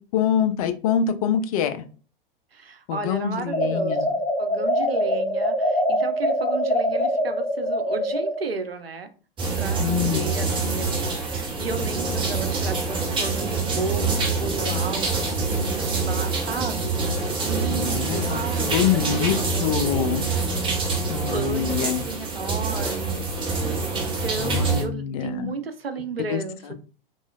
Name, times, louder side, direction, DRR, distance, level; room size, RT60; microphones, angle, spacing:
voice 1, 0.1-1.8 2.9-4.1 9.8-10.3 17.7-19.3 19.6-20.3 21.1-22.0 24.3-25.5 26.3-26.4, left 9 dB, 40° left, 0.4 m, -25 dB
voice 2, 2.5-9.1 9.6-17.2 17.4-20.7 21.3-26.7, right 4 dB, 85° right, 0.6 m, -34 dB
sound 1, 3.5-8.4, equal, 15° left, 1.0 m, -24 dB
sound 2, 9.4-24.8, right 3 dB, 15° right, 0.7 m, -26 dB
3.1 x 3.0 x 2.2 m
figure-of-eight pair, 95°, 29 cm